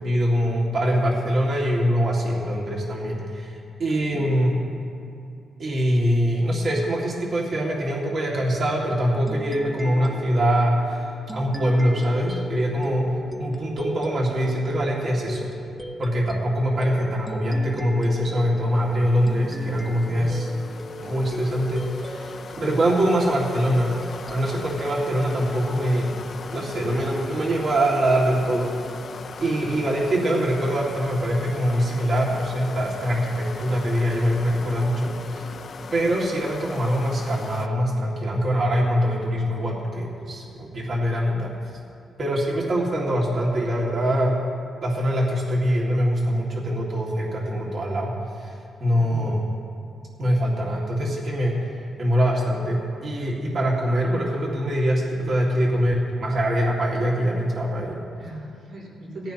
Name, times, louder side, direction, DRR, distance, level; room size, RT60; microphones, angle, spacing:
voice 1, 0.0-4.6 5.6-15.5 16.0-20.5 21.0-23.9 24.3-26.1 26.5-28.7 29.4-35.5 35.9-41.5 42.2-44.4 44.8-48.5 48.8-49.5 50.2-51.6 52.0-58.0, equal, 55° right, -4 dB, 2.1 m, -23 dB
voice 2, 3.9-4.3 13.3-13.4 20.0-20.3 48.9-49.3 58.2-59.3, right 1 dB, 75° right, -4 dB, 3.3 m, -38 dB
sound 1, 9.3-26.4, equal, 5° right, 0.8 m, -39 dB
sound 2, 18.7-37.7, left 5 dB, 50° left, 0.6 m, -39 dB
18.0 x 14.5 x 2.9 m, 2.6 s
cardioid pair, 110°, 0 cm